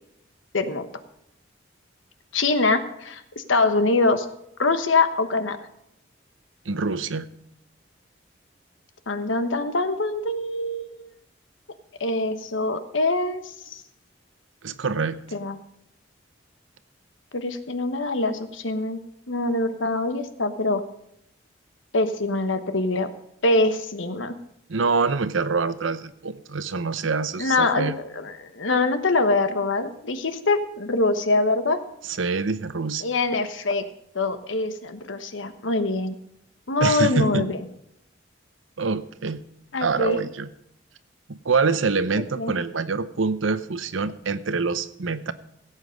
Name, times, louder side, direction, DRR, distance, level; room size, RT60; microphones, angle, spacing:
voice 1, 0.5-0.9 2.3-4.3 4.6-5.6 9.1-11.1 12.0-13.8 15.3-15.6 17.3-19.0 19.3-20.8 21.9-23.1 23.4-24.4 27.4-31.8 33.0-33.9 34.1-36.2 36.7-37.6 39.7-40.2 42.4-42.5, left 2 dB, 85° left, 10 dB, 1.2 m, -24 dB
voice 2, 6.7-7.3 14.6-15.2 24.7-28.0 32.0-33.0 36.8-37.5 38.8-39.4 39.8-40.5 41.3-45.3, right 4 dB, 90° right, 14 dB, 0.8 m, -25 dB
16.5 x 8.1 x 5.3 m, 0.78 s
head